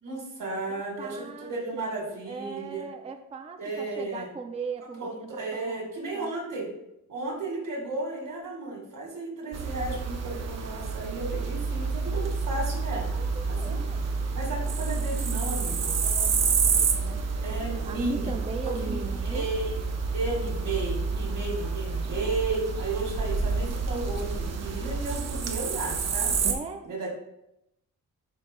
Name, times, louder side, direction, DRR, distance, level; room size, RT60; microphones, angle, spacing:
voice 1, 0.0-2.9 3.6-4.3 5.0-6.7 7.1-13.1 13.5-13.8 14.3-16.0 17.4-18.3 18.6-19.0 19.2-19.7 20.1-26.3 26.8-27.1, right 2 dB, 80° right, 0 dB, 1.9 m, -33 dB
voice 2, 0.7-2.0 2.3-5.9 6.1-6.4 13.1-14.1 14.6-14.7 16.0-17.2 17.9-19.5 26.4-26.9, right 4 dB, 20° right, 6 dB, 0.4 m, -39 dB
sound 1, 9.5-26.5, right 5 dB, 50° right, 0.7 m, -29 dB
10.5 x 4.3 x 2.2 m, 0.84 s
wide cardioid pair, 125°, 32 cm